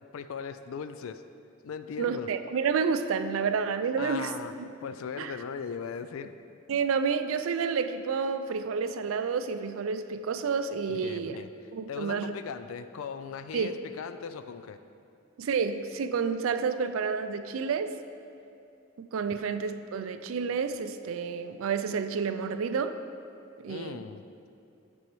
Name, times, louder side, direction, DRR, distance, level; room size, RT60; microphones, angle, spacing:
voice 1, 0.1-1.2 1.6-2.3 4.0-4.5 4.8-6.3 10.9-11.5 11.9-14.8 23.7-24.2, left 6 dB, 85° left, 11 dB, 0.4 m, -38 dB
voice 2, 2.0-4.3 4.6-4.7 5.2-5.3 6.7-11.3 11.7-12.3 13.5-13.7 15.4-17.9 19.0-23.0 23.6-24.0, right 5 dB, 75° right, 10 dB, 0.4 m, -30 dB
10.0 x 6.2 x 3.1 m, 2.6 s
head